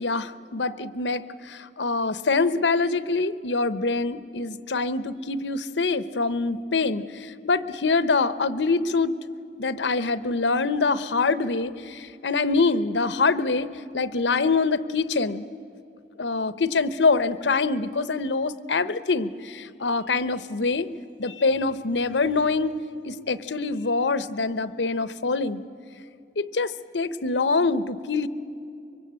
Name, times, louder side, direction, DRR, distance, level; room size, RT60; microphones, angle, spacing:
voice 1, 0.0-9.2 9.6-15.4 16.2-20.9 21.2-22.7 23.0-25.6 26.4-28.3, left 3 dB, 85° left, 14 dB, 0.8 m, -25 dB
25.0 x 23.5 x 8.8 m, 2.6 s
head